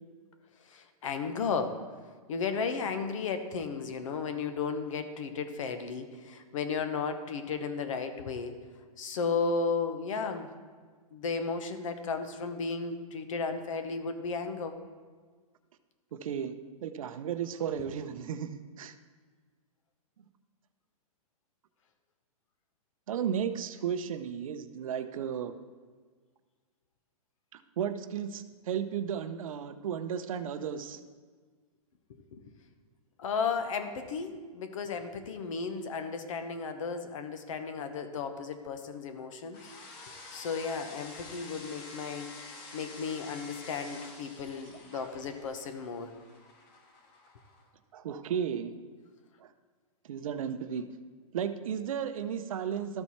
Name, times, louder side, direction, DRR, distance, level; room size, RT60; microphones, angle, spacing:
voice 1, 0.7-1.8 2.3-8.6 9.0-10.5 11.1-14.8 32.1-32.4 33.2-39.7 40.3-42.3 42.7-46.1, left 5 dB, 60° left, 8 dB, 1.0 m, -34 dB
voice 2, 16.1-16.5 16.8-18.9 23.1-25.5 27.5-31.0 44.9-45.1 47.9-48.7 49.4-49.5 50.1-50.8 51.3-53.0, right 8 dB, 65° right, 10 dB, 0.7 m, -34 dB
sound 1, 39.5-47.7, left 3 dB, 25° left, 0.9 m, -48 dB
13.0 x 4.5 x 4.3 m, 1.5 s
hypercardioid pair, 160°, 19 cm